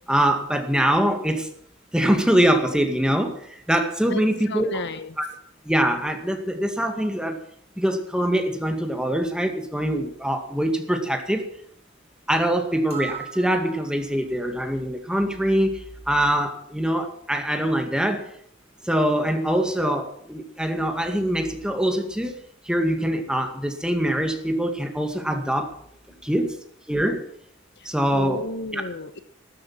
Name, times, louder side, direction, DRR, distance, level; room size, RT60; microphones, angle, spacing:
voice 1, 0.1-1.5 1.9-4.8 5.2-5.3 5.6-7.4 7.8-11.4 12.3-18.2 18.9-22.4 22.6-25.7 26.2-26.6 26.9-27.2 27.9-28.4 28.7-28.8, right 1 dB, 5° right, 5 dB, 2.1 m, -23 dB
voice 2, 4.0-5.2 26.1-26.4 27.8-29.2, left 2 dB, 60° left, 11 dB, 1.1 m, -34 dB
sound 1, 12.9-14.2, right 9 dB, 30° right, 3.1 m, -38 dB
14.5 x 13.0 x 6.3 m, 0.64 s
head